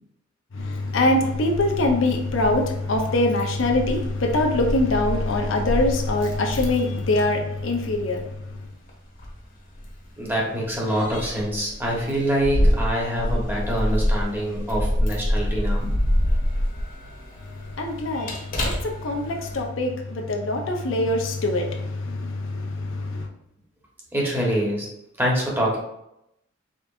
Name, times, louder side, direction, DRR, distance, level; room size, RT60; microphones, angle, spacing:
voice 1, 0.5-8.6 17.8-23.3, left 2 dB, 70° left, 0.7 m, -24 dB
Keys jangling, 0.6-19.7, equal, 50° left, 1.2 m, -27 dB
voice 2, 10.2-15.9 24.1-24.9 25.2-25.8, equal, 10° right, 1.2 m, -25 dB
5.1 x 3.8 x 2.5 m
head